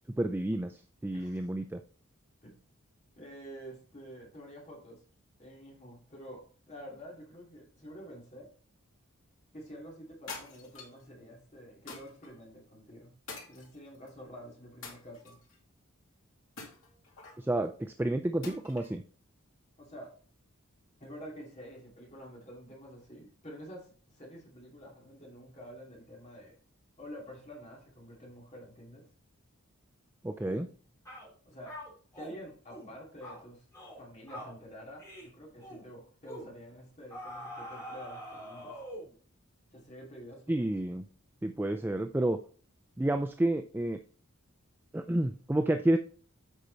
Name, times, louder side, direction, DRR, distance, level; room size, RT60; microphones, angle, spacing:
voice 1, 0.1-1.8 17.4-19.0 30.2-30.7 40.5-41.0 41.4-42.4 43.0-44.0 44.9-46.0, right 1 dB, 10° right, 7 dB, 0.3 m, -30 dB
voice 2, 1.1-1.5 2.4-2.6 3.2-5.0 5.4-6.4 6.7-8.5 9.5-13.2 13.5-15.4 19.8-20.1 21.0-26.6 27.0-29.0 31.4-31.7 32.1-33.6 33.9-38.8 39.7-40.7, equal, 30° left, -2 dB, 2.6 m, -48 dB
sound 1, 10.3-11.0 11.9-12.3 13.3-14.1 14.8-15.6 16.6-17.4 18.4-19.0, left 4 dB, 65° left, 2.5 m, -46 dB
sound 2, 30.4-30.7 31.0-31.3 31.6-32.4 32.7-32.9 33.2-33.4 33.7-34.0 34.3-34.6 35.0-35.3 35.6-35.8 36.3-36.5 37.1-39.1, equal, 15° left, 3.0 m, -44 dB
8.2 x 5.8 x 4.0 m, 0.42 s
head